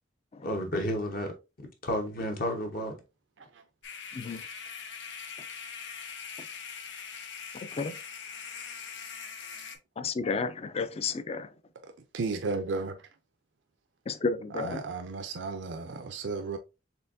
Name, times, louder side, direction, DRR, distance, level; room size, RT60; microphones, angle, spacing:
voice 1, 0.4-1.3 1.8-2.9, equal, 55° left, 1.0 m, -31 dB
sound 1, 3.8-9.8, left 6 dB, 90° left, 0.8 m, -42 dB
voice 2, 7.6-8.0 10.0-11.5 14.1-14.8, left 4 dB, 35° left, 0.4 m, -32 dB
voice 3, 12.1-13.0 14.5-16.6, right 4 dB, 85° right, 0.5 m, -34 dB
4.3 x 3.4 x 2.6 m
head